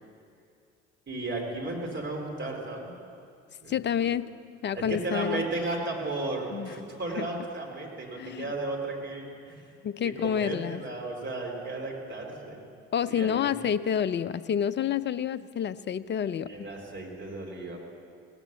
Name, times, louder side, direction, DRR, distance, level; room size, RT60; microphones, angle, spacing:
voice 1, 1.1-2.9 3.6-4.1 4.7-9.7 10.0-12.6 13.1-13.6 16.5-17.8, right 2 dB, 30° right, -1 dB, 4.1 m, -34 dB
voice 2, 3.7-4.3 4.6-5.4 6.5-6.7 7.2-7.3 8.2-8.4 9.8-10.8 12.9-16.5, left 8 dB, 30° left, 15 dB, 0.5 m, -28 dB
17.5 x 8.1 x 9.3 m, 2.3 s
hypercardioid pair, 50°, 34 cm